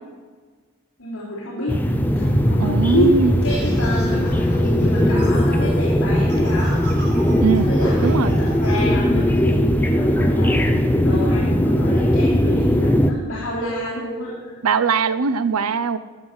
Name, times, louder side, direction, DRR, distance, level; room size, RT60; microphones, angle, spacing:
voice 1, 1.0-1.8 2.1-6.8 7.6-10.6 11.0-14.6, equal, 70° left, -7 dB, 3.2 m, -27 dB
sound 1, 1.7-13.1, equal, 10° left, 0.6 m, -19 dB
voice 2, 2.6-3.3 7.4-7.7 8.0-8.4 14.6-16.0, right 5 dB, 85° right, 14 dB, 0.6 m, -20 dB
sound 2, 3.4-8.8, right 2 dB, 50° right, 4.2 m, -39 dB
sound 3, 12.0-13.0, equal, 25° left, 2.4 m, -41 dB
13.5 x 5.9 x 7.9 m, 1.4 s
head